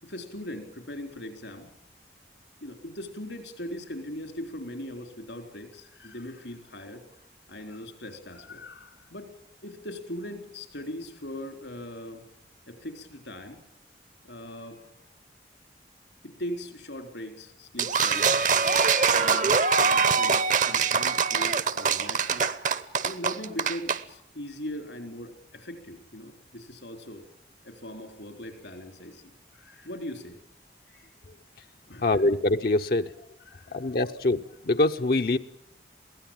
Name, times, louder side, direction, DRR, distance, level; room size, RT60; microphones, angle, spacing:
voice 1, 0.0-1.7 2.6-9.3 9.6-12.2 12.7-13.6 14.2-15.1 16.2-18.3 19.2-22.5 23.0-27.3 27.6-30.4 30.9-31.1 31.9-32.1 33.5-33.8, left 1 dB, 85° left, 6 dB, 3.9 m, -40 dB
sound 1, 17.8-24.0, right 5 dB, 45° right, 0.9 m, -23 dB
voice 2, 32.0-33.1 33.7-35.4, left 2 dB, 55° left, 6 dB, 0.7 m, -24 dB
22.5 x 16.5 x 8.9 m, 0.78 s
head